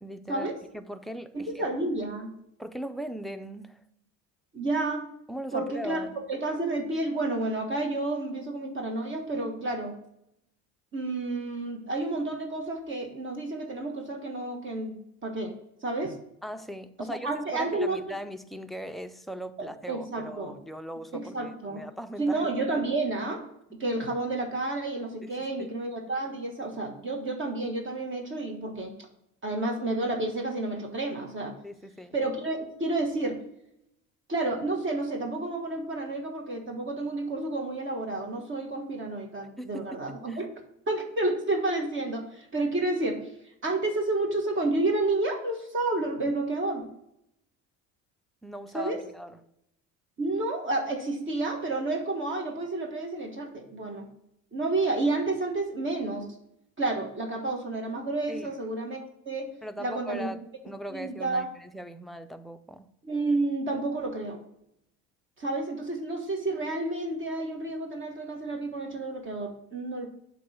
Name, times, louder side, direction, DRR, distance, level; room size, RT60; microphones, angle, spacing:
voice 1, 0.0-1.7 2.6-3.8 5.3-6.2 16.4-22.5 25.2-25.3 25.6-25.7 31.6-32.1 39.6-40.4 48.4-49.4 58.3-58.5 59.6-62.9, equal, ahead, 0.3 m, -39 dB
voice 2, 1.3-2.3 4.5-5.1 5.5-6.0 6.3-9.9 10.9-14.9 15.2-15.5 15.8-16.1 17.2-18.0 19.6-20.5 21.1-21.8 22.2-23.4 23.8-28.9 29.4-31.5 32.1-33.4 34.3-40.5 40.9-43.3 43.6-46.8 48.7-49.0 50.2-54.1 54.5-56.3 56.8-59.5 59.8-60.3 60.9-61.5 63.0-64.4 65.4-70.1, right 2 dB, 35° right, 1.3 m, -30 dB
7.7 x 3.1 x 6.2 m
cardioid pair, 100°, 33 cm